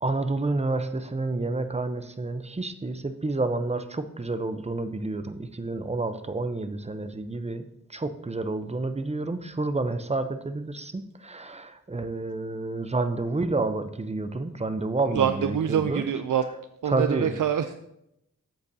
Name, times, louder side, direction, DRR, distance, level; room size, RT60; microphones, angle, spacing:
voice 1, 0.0-16.0 16.8-17.4, right 2 dB, 20° right, 10 dB, 0.6 m, -29 dB
voice 2, 15.1-16.5 16.8-17.7, right 8 dB, 75° right, 8 dB, 0.5 m, -25 dB
13.5 x 8.0 x 2.7 m, 0.82 s
wide cardioid pair, 75°, 31 cm